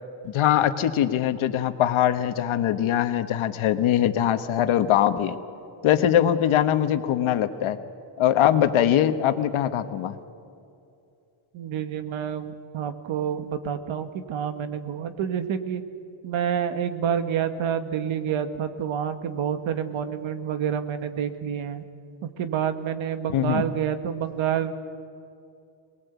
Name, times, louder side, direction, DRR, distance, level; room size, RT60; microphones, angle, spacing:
voice 1, 0.2-5.4 5.8-7.8 8.2-10.2 23.3-23.6, left 11 dB, 75° left, 9 dB, 1.4 m, -22 dB
voice 2, 11.5-15.8 16.2-21.8 22.4-24.7, right 8 dB, 70° right, 9 dB, 1.7 m, -28 dB
23.0 x 20.5 x 8.3 m, 2.5 s
cardioid pair, 140°, 49 cm